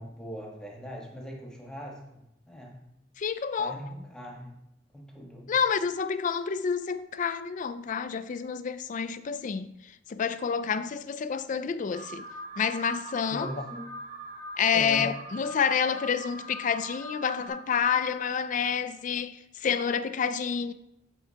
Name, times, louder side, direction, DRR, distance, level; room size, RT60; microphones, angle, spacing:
voice 1, 0.0-2.8 3.6-4.5 4.9-5.5 13.3-13.8 14.7-15.1, equal, 5° left, 1.3 m, -40 dB
voice 2, 3.2-3.8 5.5-12.3 12.6-13.5 14.6-20.7, left 6 dB, 40° left, 0.4 m, -29 dB
Alarm, 11.9-17.5, right 1 dB, 65° right, 2.5 m, -42 dB
12.5 x 4.5 x 2.9 m
head